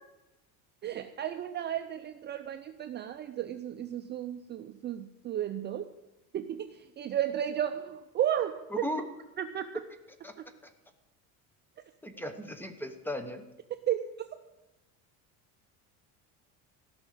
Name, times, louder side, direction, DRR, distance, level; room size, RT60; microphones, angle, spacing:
voice 1, 0.8-5.9 6.3-8.5 9.4-9.7 13.9-14.1, right 10 dB, 30° right, 7 dB, 0.5 m, -33 dB
voice 2, 8.7-9.0 10.2-10.3 10.6-10.7 12.0-13.4, left 1 dB, 5° left, 9 dB, 1.0 m, -36 dB
16.0 x 6.2 x 9.9 m, 1.0 s
cardioid pair, 155°, 38 cm